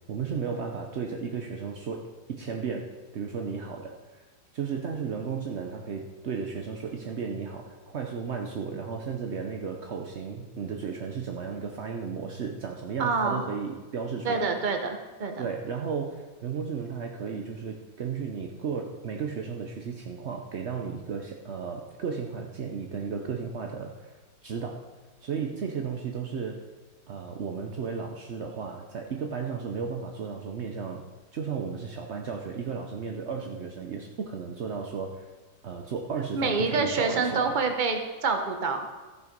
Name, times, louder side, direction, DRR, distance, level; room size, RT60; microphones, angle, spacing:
voice 1, 0.1-4.2 4.5-14.5 15.4-24.1 24.4-24.9 25.2-26.6 27.1-31.1 31.3-35.2 35.6-37.6, right 6 dB, 70° right, 2 dB, 0.6 m, -34 dB
voice 2, 13.0-13.4 14.2-15.5 36.3-38.8, right 4 dB, 35° right, 5 dB, 0.8 m, -27 dB
14.0 x 6.8 x 5.2 m, 1.3 s
omnidirectional pair, 2.2 m